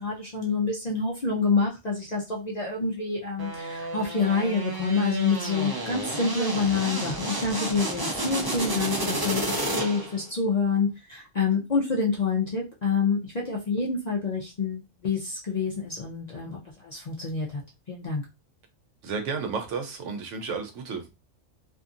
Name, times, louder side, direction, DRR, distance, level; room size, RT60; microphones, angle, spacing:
voice 1, 0.0-17.6 17.9-18.2, left 4 dB, 50° left, -3 dB, 0.5 m, -27 dB
sound 1, 3.4-10.2, right 1 dB, 30° right, 0.4 m, -31 dB
voice 2, 19.0-21.1, right 5 dB, 75° right, 5 dB, 1.0 m, -32 dB
2.6 x 2.6 x 2.4 m, 0.26 s
omnidirectional pair, 1.3 m